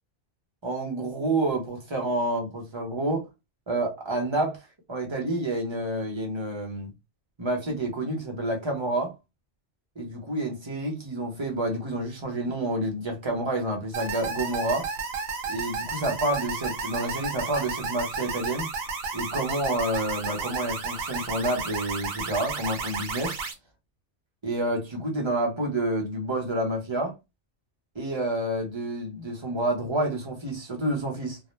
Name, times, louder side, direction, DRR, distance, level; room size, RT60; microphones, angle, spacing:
voice 1, 0.6-3.3 3.7-4.6 4.9-6.9 7.4-9.1 10.0-14.9 15.5-18.7 19.1-23.4 24.4-27.1 27.9-31.4, right 1 dB, 30° right, 0.6 m, -29 dB
sound 1, 13.9-23.5, right 5 dB, 65° right, 0.8 m, -33 dB
2.3 x 2.0 x 3.0 m
omnidirectional pair, 1.2 m